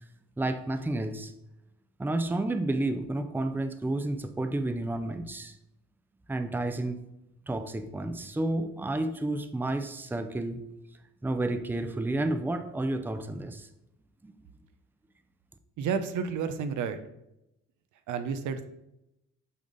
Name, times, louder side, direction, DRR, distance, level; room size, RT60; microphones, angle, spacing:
voice 1, 0.4-1.3 2.0-5.5 6.3-7.0 7.5-10.6 11.2-13.7 14.2-14.3, right 2 dB, 5° right, 9 dB, 0.5 m, -31 dB
voice 2, 15.8-17.0 18.1-18.6, right 6 dB, 75° right, 9 dB, 0.7 m, -31 dB
8.4 x 3.8 x 3.9 m, 0.87 s
cardioid pair, 90°, 30 cm